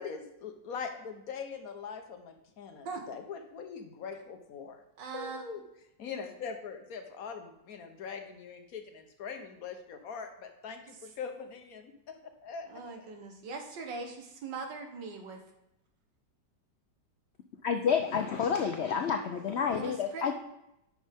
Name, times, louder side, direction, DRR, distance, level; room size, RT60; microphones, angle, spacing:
voice 1, 0.0-4.8 5.1-5.6 6.0-13.1, left 6 dB, 60° left, 6 dB, 1.3 m, -42 dB
voice 2, 5.0-5.4 11.0-11.1 12.6-15.4 19.7-20.3, right 4 dB, 85° right, 3 dB, 1.9 m, -41 dB
voice 3, 17.6-20.3, left 6 dB, 85° left, 5 dB, 0.5 m, -29 dB
9.3 x 6.4 x 3.5 m, 0.86 s
omnidirectional pair, 1.9 m